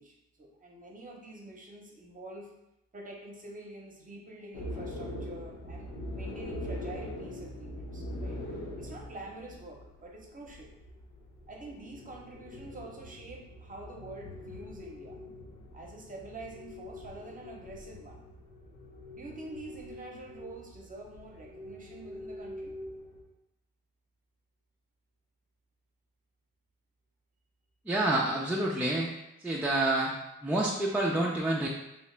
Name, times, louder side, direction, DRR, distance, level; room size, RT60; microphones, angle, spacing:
voice 1, 0.0-2.5 2.9-8.4 8.8-10.7 11.5-15.2 15.7-18.2 19.1-22.7, right 2 dB, 25° right, 0 dB, 0.8 m, -46 dB
sound 1, 4.5-23.2, left 1 dB, 90° left, 0.7 m, -43 dB
voice 2, 27.9-29.1 29.4-30.1 30.4-31.7, right 1 dB, 5° right, -4 dB, 0.4 m, -28 dB
3.1 x 2.8 x 3.3 m, 0.88 s
cardioid pair, 90°, 30 cm